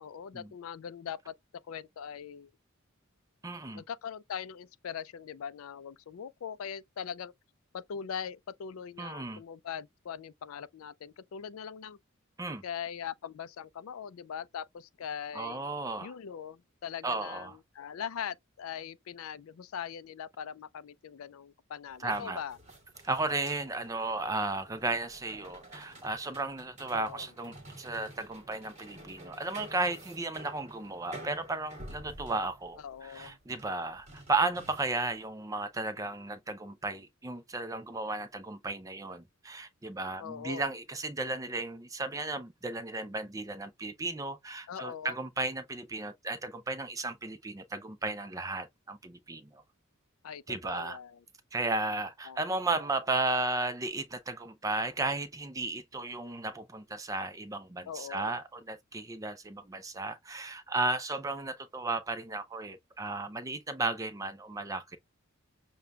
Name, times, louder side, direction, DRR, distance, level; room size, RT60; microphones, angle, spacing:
voice 1, 0.0-1.3 1.7-2.5 3.7-7.3 7.7-12.0 12.6-15.6 16.0-22.6 26.9-27.3 32.8-33.4 40.2-40.7 44.7-45.2 50.2-51.2 52.3-52.4 57.9-58.3, left 8 dB, 80° left, 0.4 m, -41 dB
voice 2, 3.4-3.8 9.0-9.4 12.4-12.6 15.3-16.1 17.0-17.5 22.0-22.4 23.0-49.6 50.5-51.0 51.5-65.0, right 3 dB, 15° right, 0.4 m, -34 dB
sound 1, 21.9-35.2, right 1 dB, 30° right, 1.2 m, -50 dB
6.6 x 2.2 x 2.2 m
head